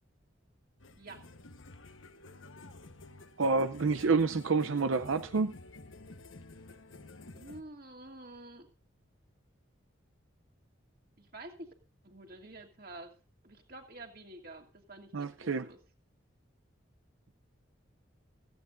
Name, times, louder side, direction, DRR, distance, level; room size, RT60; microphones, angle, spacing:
sound 1, 0.8-7.6, left 2 dB, 85° left, 1.2 m, -51 dB
voice 1, 3.4-5.5 15.1-15.7, right 4 dB, 85° right, 9 dB, 0.6 m, -28 dB
voice 2, 7.3-8.7 11.2-11.7 12.0-13.1 13.4-15.8, right 2 dB, 45° right, 3 dB, 2.5 m, -49 dB
16.5 x 15.5 x 2.6 m, 0.36 s
head